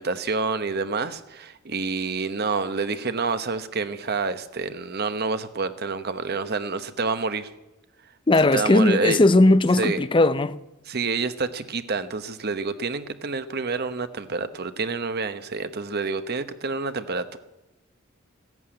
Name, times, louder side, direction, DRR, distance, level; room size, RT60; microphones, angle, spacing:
voice 1, 0.0-7.5 8.5-9.2 9.8-10.0 10.9-17.4, right 4 dB, 50° right, 1.0 m, -28 dB
voice 2, 8.3-10.6, left 2 dB, 25° left, 0.5 m, -18 dB
14.5 x 11.0 x 8.8 m
head